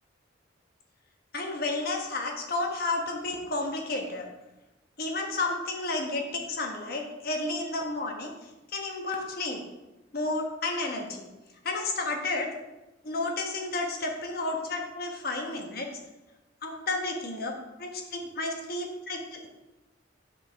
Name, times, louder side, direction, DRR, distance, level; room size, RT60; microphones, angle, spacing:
voice 1, 1.3-4.3 5.0-8.3 8.7-9.6 10.1-11.2 11.6-12.5 13.0-15.9 16.6-19.5, left 2 dB, 55° left, 2 dB, 1.2 m, -31 dB
6.7 x 5.8 x 4.5 m, 1.0 s
head